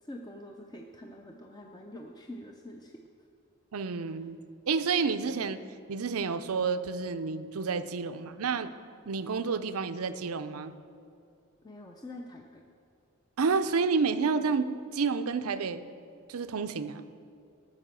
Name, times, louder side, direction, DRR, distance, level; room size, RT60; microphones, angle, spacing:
voice 1, 0.0-3.0 11.6-12.6, left 1 dB, 20° left, 1 dB, 0.6 m, -45 dB
voice 2, 3.7-4.4 4.7-5.6 5.9-8.7 9.1-10.7 13.4-15.8 16.3-17.0, right 5 dB, 85° right, 12 dB, 0.6 m, -30 dB
14.0 x 6.0 x 7.5 m, 2.5 s
head